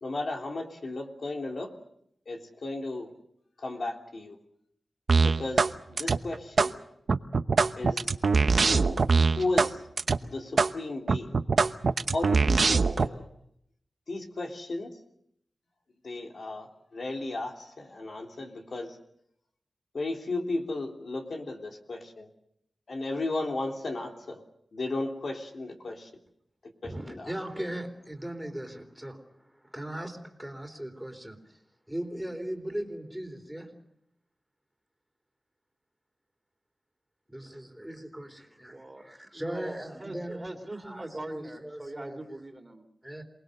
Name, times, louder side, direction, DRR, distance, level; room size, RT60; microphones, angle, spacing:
voice 1, 0.0-1.7 2.2-3.1 3.6-4.4 5.2-6.7 7.8-8.1 8.7-9.8 10.2-11.4 12.1-13.2 14.1-14.9 16.0-19.0 19.9-22.3 22.9-24.4 24.7-26.1 26.8-27.3, left 2 dB, 65° left, 2 dB, 3.3 m, -35 dB
sound 1, 5.1-5.7 6.0-6.7 7.1-9.7 10.0-10.2 10.6-10.7 11.1-13.1, right 4 dB, 65° right, 0.9 m, -22 dB
voice 2, 26.8-31.6 31.9-33.9 37.3-40.4 40.8-42.2 43.0-43.2, right 1 dB, 5° right, 5 dB, 3.7 m, -38 dB
voice 3, 38.7-42.8, right 2 dB, 25° right, 6 dB, 2.8 m, -42 dB
28.0 x 20.0 x 6.8 m, 0.73 s
wide cardioid pair, 90°, 0 cm